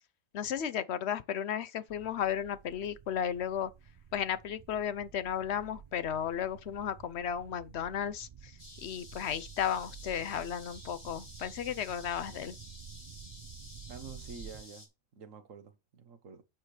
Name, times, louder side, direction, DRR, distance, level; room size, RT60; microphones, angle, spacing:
voice 1, 0.3-3.7 4.1-12.6, left 9 dB, 60° left, 0.9 m, -34 dB
sound 1, 1.9-14.6, right 8 dB, 55° right, 0.4 m, -51 dB
sound 2, 8.6-14.9, left 2 dB, 30° left, 1.9 m, -52 dB
voice 2, 13.9-14.9 15.1-16.4, right 5 dB, 75° right, 1.6 m, -48 dB
8.9 x 5.0 x 4.4 m
omnidirectional pair, 1.4 m